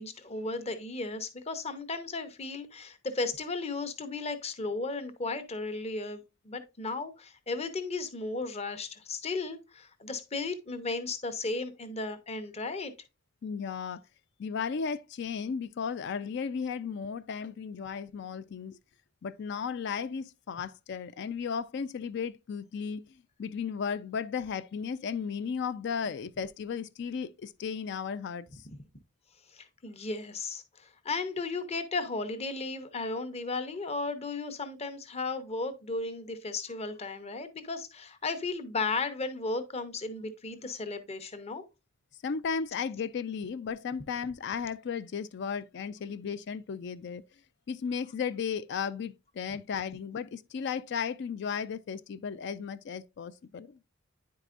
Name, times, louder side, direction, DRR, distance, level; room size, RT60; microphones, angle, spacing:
voice 1, 0.0-12.9 29.5-41.6, left 3 dB, 30° left, 0.8 m, -35 dB
voice 2, 13.4-14.0 14.4-18.8 19.2-28.7 42.2-47.2 47.7-53.8, left 6 dB, 55° left, 0.4 m, -35 dB
9.9 x 4.7 x 2.5 m
head